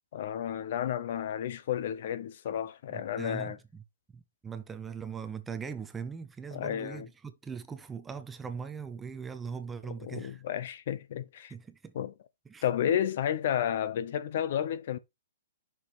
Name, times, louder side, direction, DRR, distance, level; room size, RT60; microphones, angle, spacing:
voice 1, 0.1-3.6 6.5-7.1 10.0-11.5 11.9-12.1 12.6-15.0, left 9 dB, 45° left, 0.6 m, -32 dB
voice 2, 2.9-3.8 4.1-10.4 11.5-11.9 12.5-12.6, right 6 dB, 10° right, 0.5 m, -40 dB
6.1 x 5.0 x 3.4 m
hypercardioid pair, 165°, 0 cm